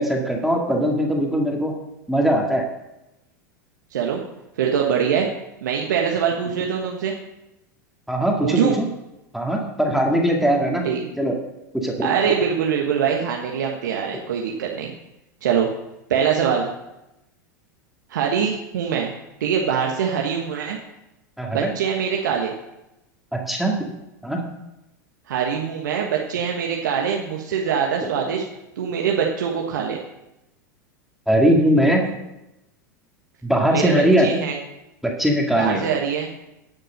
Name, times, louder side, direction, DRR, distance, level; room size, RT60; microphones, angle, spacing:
voice 1, 0.0-1.7 2.1-2.7 8.1-8.9 9.3-10.9 11.2-11.4 11.7-12.1 21.4-21.7 23.3-23.9 24.2-24.4 31.3-32.0 33.4-34.3 35.0-35.9, right 1 dB, ahead, 0 dB, 2.0 m, -20 dB
voice 2, 3.9-4.2 4.6-5.3 5.6-7.1 8.4-8.8 10.8-11.0 12.0-14.9 15.4-15.7 16.1-16.7 18.1-19.1 19.4-20.8 21.5-22.5 25.3-28.4 28.8-30.0 33.7-33.9 34.2-34.5 35.6-36.3, right 7 dB, 70° right, 0 dB, 1.3 m, -23 dB
12.0 x 6.8 x 6.5 m, 0.92 s
hypercardioid pair, 90°, 10 cm